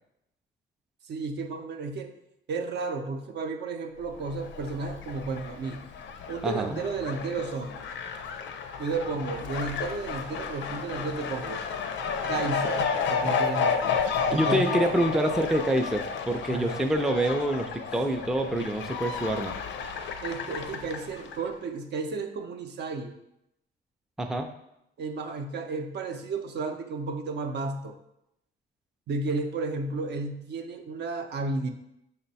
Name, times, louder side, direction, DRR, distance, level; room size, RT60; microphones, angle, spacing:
voice 1, 1.0-2.1 2.5-5.8 6.3-7.8 8.8-11.6 12.3-14.0 14.3-14.9 16.5-16.8 20.2-23.1 25.0-28.0 29.1-31.7, right 3 dB, 60° right, 6 dB, 0.5 m, -33 dB
Fowl, 4.1-21.5, left 5 dB, 70° left, 0.5 m, -32 dB
voice 2, 6.4-6.8 14.3-19.5 24.2-24.5, right 1 dB, ahead, 4 dB, 0.3 m, -26 dB
5.3 x 2.2 x 4.0 m, 0.81 s
cardioid pair, 90°, 20 cm